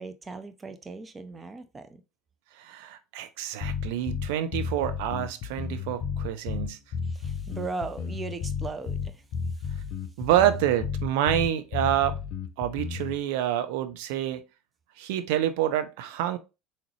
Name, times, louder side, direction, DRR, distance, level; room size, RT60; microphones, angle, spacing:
voice 1, 0.0-2.0 7.0-9.2 9.5-9.7, right 4 dB, 25° right, 0.6 m, -38 dB
voice 2, 2.6-6.8 10.2-12.2 12.6-14.4 15.0-16.4, right 11 dB, 70° right, 0.5 m, -27 dB
sound 1, 3.6-13.2, left 6 dB, 60° left, 0.5 m, -32 dB
3.7 x 2.8 x 3.1 m
hypercardioid pair, 75°, 0 cm